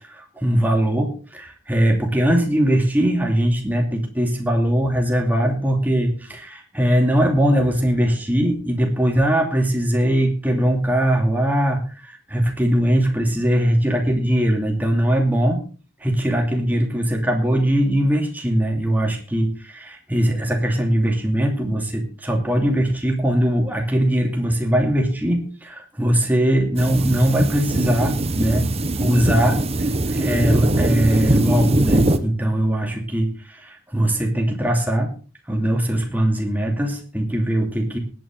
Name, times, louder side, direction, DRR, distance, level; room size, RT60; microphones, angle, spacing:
voice 1, 0.2-11.8 12.1-15.6 16.0-28.7 29.0-29.7 30.1-35.1 35.5-38.0, equal, 10° right, 2 dB, 2.7 m, -20 dB
sound 1, 26.8-32.2, right 1 dB, 30° right, 1.1 m, -21 dB
19.5 x 9.1 x 3.8 m, 0.37 s
head